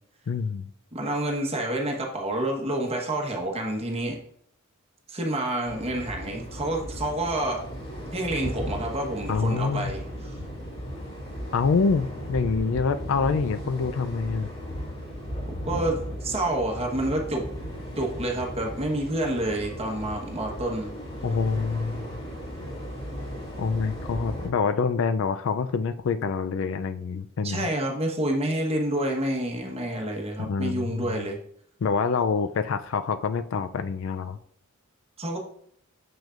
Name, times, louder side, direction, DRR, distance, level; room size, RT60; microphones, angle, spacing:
voice 1, 0.3-0.7 9.3-9.9 11.5-14.5 21.2-22.1 23.6-27.7 30.4-31.2 31.8-34.4, left 5 dB, 65° left, 11 dB, 0.4 m, -26 dB
voice 2, 0.9-4.2 5.1-7.6 8.1-10.0 10.2-10.4 15.5-17.5 18.0-20.9 27.4-31.4 35.2-35.4, right 1 dB, 30° right, 0 dB, 1.2 m, -28 dB
sound 1, 5.6-24.5, equal, 30° left, 2.4 m, -36 dB
6.9 x 6.2 x 2.5 m, 0.66 s
head